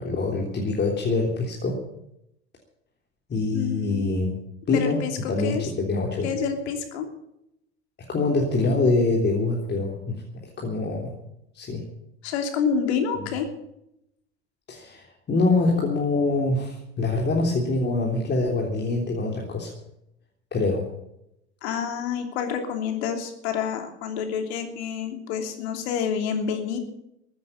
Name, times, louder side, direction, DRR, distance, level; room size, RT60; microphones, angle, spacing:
voice 1, 0.0-1.8 3.3-4.4 4.7-6.3 8.1-10.2 10.6-11.1 11.5-11.8 14.7-19.7 20.5-20.9, left 3 dB, 30° left, 0 dB, 3.5 m, -24 dB
voice 2, 3.5-4.2 4.7-5.1 5.4-5.6 6.2-7.1 12.2-13.5 21.6-26.8, left 7 dB, 70° left, 5 dB, 3.1 m, -28 dB
14.5 x 9.4 x 8.6 m, 0.81 s
hypercardioid pair, 85°, 34 cm